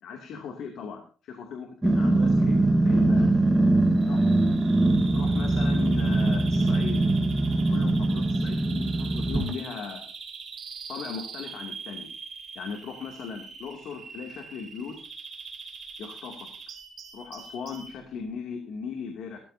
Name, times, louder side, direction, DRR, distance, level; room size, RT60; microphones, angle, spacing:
voice 1, 0.0-3.3 4.1-4.3 5.1-7.0 7.7-10.0 10.9-12.1 12.5-15.0 16.0-16.5 17.1-19.4, left 6 dB, 65° left, 2 dB, 2.6 m, -38 dB
Growling, 1.8-9.5, right 2 dB, 10° right, 1.5 m, -22 dB
Bird vocalization bird call bird song, 4.0-18.0, right 5 dB, 40° right, 3.9 m, -42 dB
16.5 x 14.0 x 2.8 m, 0.38 s
cardioid pair, 150°, 0 cm